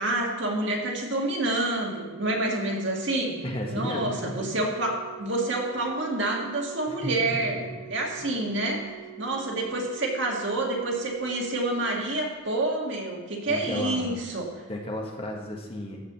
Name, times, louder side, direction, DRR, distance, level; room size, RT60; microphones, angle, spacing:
voice 1, 0.0-3.4 3.7-7.6 7.9-8.9 9.2-14.5, right 2 dB, 55° right, -1 dB, 1.9 m, -28 dB
Organ, 1.9-12.8 13.9-14.1, right 16 dB, 75° left, 3.8 m, -45 dB
voice 2, 3.4-4.7 7.0-7.7 8.2-8.3 13.5-14.2 14.7-16.0, left 1 dB, 25° left, 0 dB, 1.4 m, -33 dB
14.5 x 4.9 x 6.9 m, 1.3 s
head